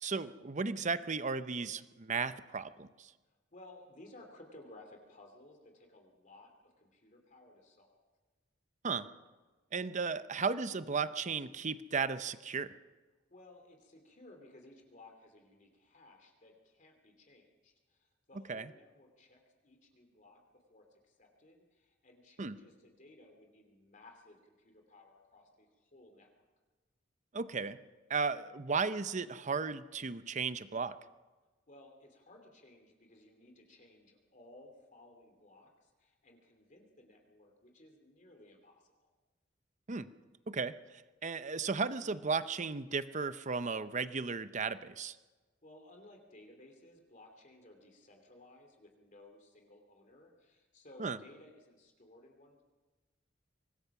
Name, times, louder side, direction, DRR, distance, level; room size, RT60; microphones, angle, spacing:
voice 1, 0.0-3.1 8.8-9.1 9.7-12.7 18.5-18.6 22.4-22.6 27.3-27.8 28.1-30.9 39.9-40.1 40.5-45.2 51.0-51.2, right 5 dB, 40° right, 13 dB, 0.7 m, -35 dB
voice 2, 3.5-8.0 13.3-26.4 31.7-39.1 45.6-52.6, left 2 dB, 40° left, 3 dB, 2.8 m, -58 dB
24.5 x 19.0 x 6.0 m, 1.3 s
head